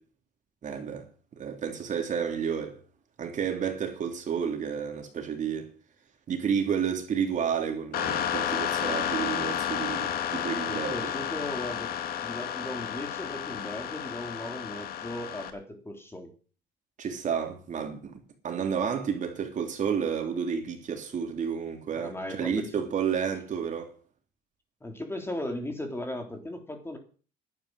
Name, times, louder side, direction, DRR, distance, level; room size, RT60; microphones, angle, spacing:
voice 1, 0.6-1.1 1.4-2.8 3.2-5.7 6.3-11.1 17.0-18.2 18.4-23.9, right 7 dB, 45° right, 3.3 m, -31 dB
sound 1, 7.9-15.5, left 9 dB, 65° left, 2.1 m, -31 dB
voice 2, 10.7-11.9 12.2-16.3 21.9-22.9 24.8-27.0, left 1 dB, 15° left, 3.6 m, -37 dB
11.5 x 9.3 x 8.2 m
cardioid pair, 110°, 17 cm